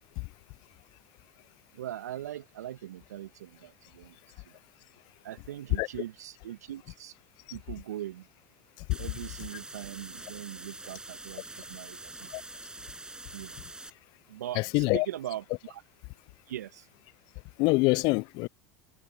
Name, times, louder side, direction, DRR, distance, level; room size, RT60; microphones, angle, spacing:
voice 1, 1.7-4.2 4.4-4.6 5.2-7.1 7.5-8.3 9.0-12.5 13.3-13.7 14.3-15.8 16.5-16.9, right 12 dB, 75° right, 1.7 m, -41 dB
sound 1, 8.9-13.9, right 2 dB, 10° right, 6.7 m, -45 dB
voice 2, 14.6-15.1 17.6-18.5, left 26 dB, 55° left, 0.5 m, -25 dB
hypercardioid pair, 80°, 9 cm